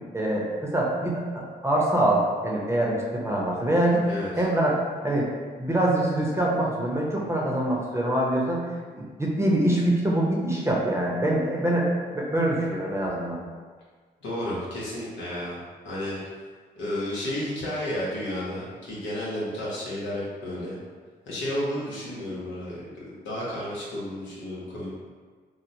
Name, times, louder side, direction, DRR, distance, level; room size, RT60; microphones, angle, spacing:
voice 1, 0.1-4.0 4.4-5.3 5.6-8.6 9.2-11.9 12.1-13.4, right 1 dB, 15° right, -3 dB, 0.7 m, -24 dB
voice 2, 14.2-15.6 15.8-16.2 16.8-20.8 21.3-24.9, left 1 dB, 85° left, -7 dB, 0.9 m, -32 dB
3.0 x 2.1 x 2.6 m, 1.5 s
supercardioid pair, 60°, 19 cm